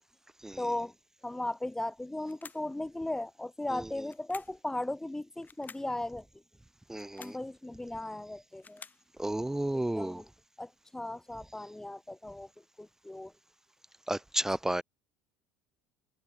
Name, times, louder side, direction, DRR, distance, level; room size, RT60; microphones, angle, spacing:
voice 1, 0.6-0.9 1.2-6.3 7.2-8.8 10.0-10.3 10.6-12.5 12.8-13.3, left 1 dB, 10° left, 3.8 m, -37 dB
sound 1, 2.2-2.7 4.0-4.6 5.4-5.9 6.9-7.4 8.3-9.1, left 5 dB, 25° left, 4.8 m, -51 dB
voice 2, 6.9-7.4 9.2-10.2 14.1-14.8, right 1 dB, 5° right, 0.7 m, -32 dB
hypercardioid pair, 70°, 6 cm